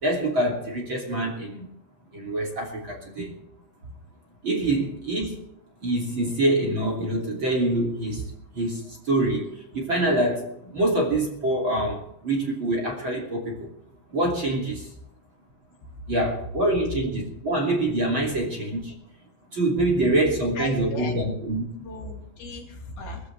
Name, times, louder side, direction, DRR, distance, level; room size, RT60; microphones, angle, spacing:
voice 1, 0.0-1.7 2.1-3.4 4.4-5.3 5.8-8.2 8.5-13.7 14.1-14.9 16.1-18.9 19.5-21.6, right 1 dB, 30° right, 1 dB, 3.2 m, -25 dB
voice 2, 20.6-21.2 21.8-23.2, left 2 dB, 65° left, 1 dB, 4.5 m, -37 dB
21.5 x 15.0 x 3.4 m, 0.75 s
omnidirectional pair, 4.7 m